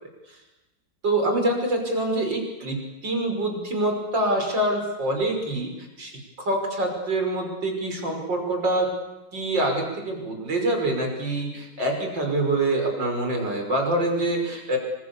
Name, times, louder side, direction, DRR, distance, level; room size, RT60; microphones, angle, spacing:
voice 1, 1.0-5.7 6.0-8.9 9.3-14.8, right 1 dB, 75° right, 3 dB, 6.5 m, -25 dB
27.0 x 25.5 x 7.1 m, 1.0 s
omnidirectional pair, 2.0 m